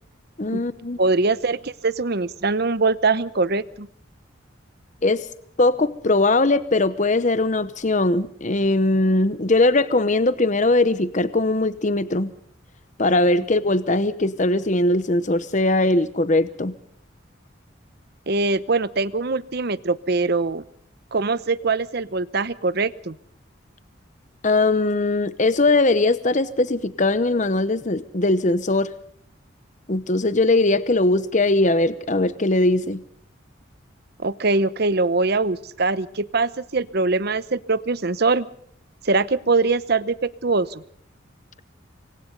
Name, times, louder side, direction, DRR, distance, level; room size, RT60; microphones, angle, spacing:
voice 1, 0.4-1.0 5.0-5.3 5.6-12.3 13.0-16.7 24.4-28.9 29.9-33.0, left 2 dB, 40° left, 14 dB, 0.9 m, -20 dB
voice 2, 1.0-3.9 18.3-20.6 21.1-23.1 34.2-38.5 39.0-40.8, right 3 dB, 50° right, 16 dB, 0.9 m, -22 dB
27.5 x 24.0 x 4.0 m, 0.64 s
head